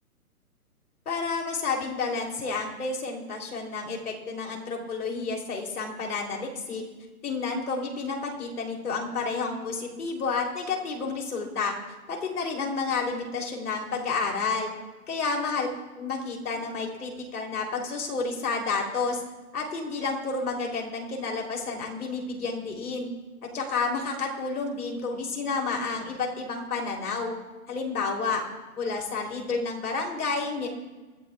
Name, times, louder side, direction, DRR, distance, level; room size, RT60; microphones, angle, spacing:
voice 1, 1.0-6.8 7.2-11.7 12.1-14.7 15.1-15.7 15.9-19.2 19.5-23.1 23.5-27.4 27.7-28.4 28.7-30.7, left 4 dB, 75° left, 1 dB, 3.4 m, -30 dB
24.5 x 12.5 x 2.4 m, 1.2 s
hypercardioid pair, 150°, 45 cm